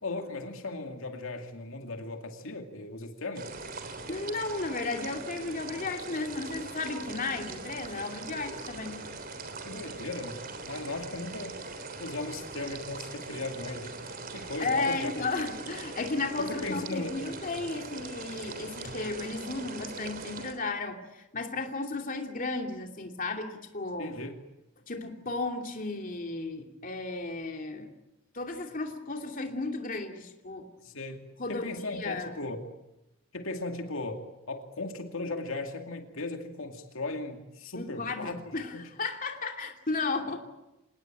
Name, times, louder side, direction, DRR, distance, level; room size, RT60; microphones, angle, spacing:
voice 1, 0.0-3.5 9.6-11.6 12.0-15.3 16.4-17.2 24.0-24.3 30.8-32.6 33.3-38.4 38.7-38.8, left 2 dB, 75° left, 5 dB, 2.4 m, -37 dB
sound 1, 3.3-20.5, right 3 dB, 45° right, 3.4 m, -41 dB
voice 2, 4.1-9.0 14.4-24.1 24.9-27.9 28.3-30.7 31.4-32.4 37.7-40.4, left 3 dB, 40° left, 4 dB, 2.7 m, -34 dB
27.0 x 19.5 x 9.0 m, 0.95 s
head